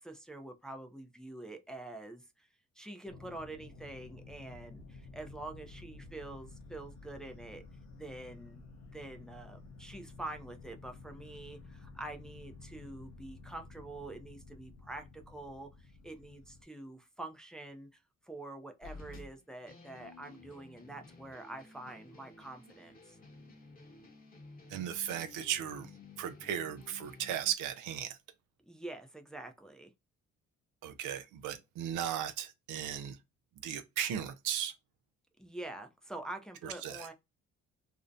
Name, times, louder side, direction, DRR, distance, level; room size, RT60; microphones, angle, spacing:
voice 1, 0.0-2.5 2.8-7.6 7.9-8.6 8.9-23.2 28.7-29.9 35.4-37.1, right 2 dB, ahead, 0.4 m, -46 dB
sound 1, 3.1-16.6, left 3 dB, 65° left, 0.7 m, -52 dB
sound 2, 18.8-27.5, left 3 dB, 30° left, 0.8 m, -53 dB
voice 2, 24.7-25.9 26.2-28.2 30.8-33.2 33.6-34.7 36.6-37.1, right 10 dB, 90° right, 0.5 m, -36 dB
2.6 x 2.0 x 2.5 m
cardioid pair, 90°, 30 cm